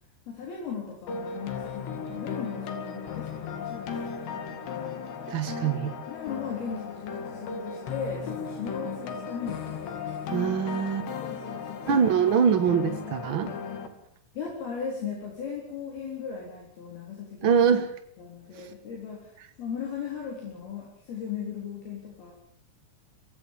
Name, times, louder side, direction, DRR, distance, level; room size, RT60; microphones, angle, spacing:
voice 1, 0.3-5.1 6.1-9.8 11.2-12.1 14.4-17.6 18.2-22.3, left 6 dB, 65° left, -1 dB, 5.8 m, -37 dB
sound 1, 1.1-13.9, left 6 dB, 80° left, 4.7 m, -36 dB
voice 2, 5.3-5.9 10.3-11.1 11.9-13.5 17.4-17.9 18.6-18.7, right 7 dB, 80° right, 8 dB, 1.1 m, -24 dB
24.0 x 19.5 x 7.3 m, 0.65 s
omnidirectional pair, 4.8 m